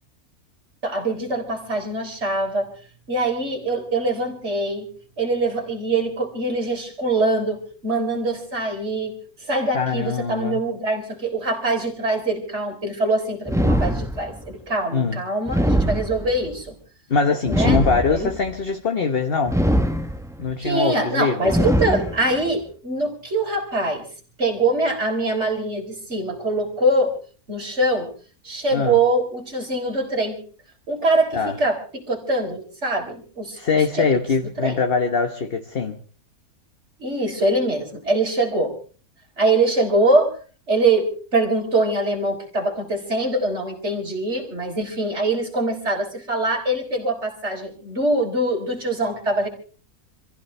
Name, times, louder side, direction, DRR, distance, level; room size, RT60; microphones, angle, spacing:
voice 1, 0.8-2.7 3.1-4.9 5.2-9.2 9.4-16.8 17.5-17.8 18.1-18.3 20.6-24.1 24.4-27.1 27.5-28.1 28.4-30.4 30.9-33.6 33.9-34.8 37.0-38.7 39.4-40.3 40.7-49.5, right 2 dB, 50° right, 4.2 m, -23 dB
voice 2, 9.7-10.6 14.9-15.2 17.1-19.6 20.4-21.5 28.7-29.0 31.3-31.5 33.6-36.0, left 5 dB, 40° left, 1.4 m, -22 dB
sound 1, 13.5-14.5 15.4-16.5 17.4-18.5 19.5-20.5 21.4-22.5, equal, 5° right, 0.7 m, -22 dB
27.0 x 15.5 x 3.3 m
omnidirectional pair, 1.5 m